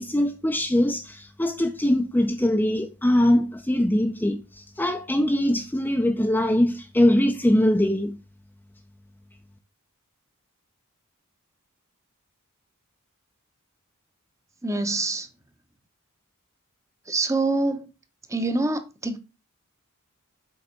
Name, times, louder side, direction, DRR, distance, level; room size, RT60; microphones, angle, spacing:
voice 1, 0.0-8.1, left 1 dB, 10° left, 0.6 m, -22 dB
voice 2, 14.6-15.3 17.1-17.9 18.3-19.2, right 2 dB, 15° right, 0.9 m, -25 dB
7.9 x 3.5 x 5.2 m
head